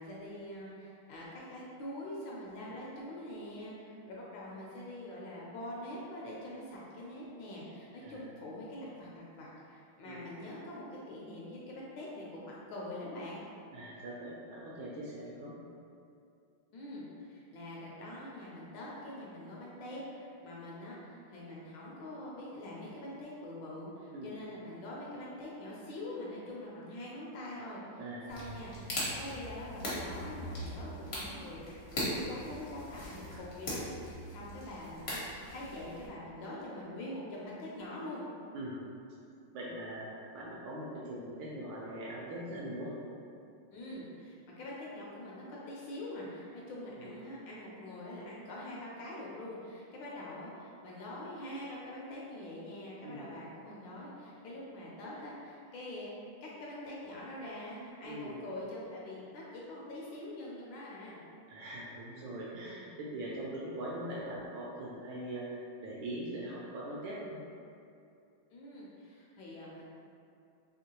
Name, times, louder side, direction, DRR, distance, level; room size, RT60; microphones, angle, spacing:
voice 1, 0.0-13.4 16.7-33.8 34.3-38.2 43.7-56.1 56.4-61.2 68.5-69.8, left 1 dB, 75° left, -5 dB, 1.2 m, -44 dB
voice 2, 13.7-15.6 24.1-24.3 28.0-28.3 38.5-38.8 39.5-42.9 47.0-47.2 53.0-53.3 58.0-58.4 61.5-67.4, right 1 dB, 80° right, -6 dB, 1.4 m, -41 dB
sound 1, 28.3-36.1, equal, 55° left, 0.6 m, -40 dB
3.6 x 2.9 x 2.8 m, 2.5 s
omnidirectional pair, 2.3 m